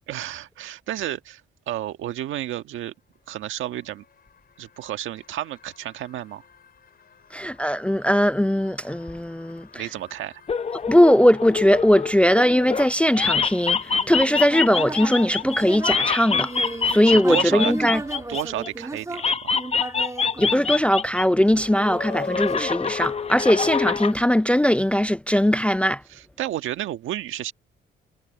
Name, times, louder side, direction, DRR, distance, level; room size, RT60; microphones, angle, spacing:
voice 1, 0.1-1.4 1.7-2.9 3.3-4.0 4.6-6.4 9.7-10.4 17.1-17.7 18.3-19.5 26.1-27.5, right 13 dB, 80° right, 1.5 m, -31 dB
sound 1, 2.9-19.9, left 7 dB, 50° left, 5.4 m, -51 dB
voice 2, 7.3-9.8 10.9-16.5 16.9-18.0 20.4-26.0, equal, 5° left, 0.4 m, -20 dB
sound 2, 10.5-12.9 13.1-18.7 19.1-21.2 21.5-24.1, left 5 dB, 30° left, 0.8 m, -26 dB
Human voice, 13.9-21.2 21.8-23.3, right 2 dB, 15° right, 2.0 m, -35 dB
cardioid pair, 90°, 20 cm